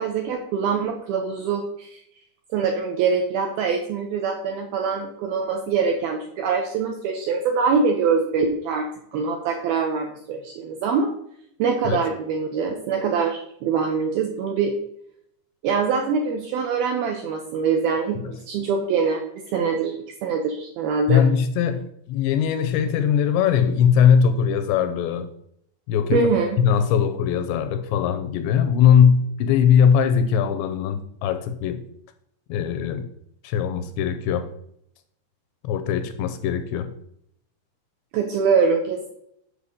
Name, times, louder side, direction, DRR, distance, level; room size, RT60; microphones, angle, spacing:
voice 1, 0.0-2.0 2.5-8.8 9.1-11.1 11.6-14.7 15.6-19.2 19.5-21.2 26.1-26.6 38.1-39.1, right 5 dB, 75° right, 3 dB, 2.2 m, -24 dB
voice 2, 21.1-25.3 25.9-26.3 26.6-31.8 32.5-33.1 33.4-34.5 35.6-36.9, left 8 dB, 85° left, 9 dB, 2.7 m, -20 dB
8.3 x 5.4 x 6.5 m, 0.72 s
omnidirectional pair, 5.4 m